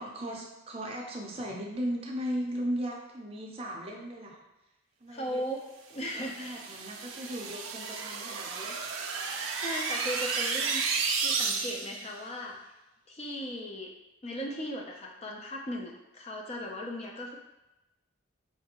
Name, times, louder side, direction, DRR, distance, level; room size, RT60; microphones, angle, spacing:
voice 1, 0.0-4.4 5.0-5.4 6.1-8.8, equal, 30° right, -1 dB, 0.5 m, -37 dB
voice 2, 5.1-6.6 7.2-7.4 9.1-10.8 11.2-12.7 13.1-13.9 14.2-17.4, equal, 30° left, 0 dB, 0.4 m, -38 dB
sound 1, 6.1-12.1, right 5 dB, 80° right, 0.4 m, -32 dB
4.5 x 2.5 x 2.8 m, 0.99 s
head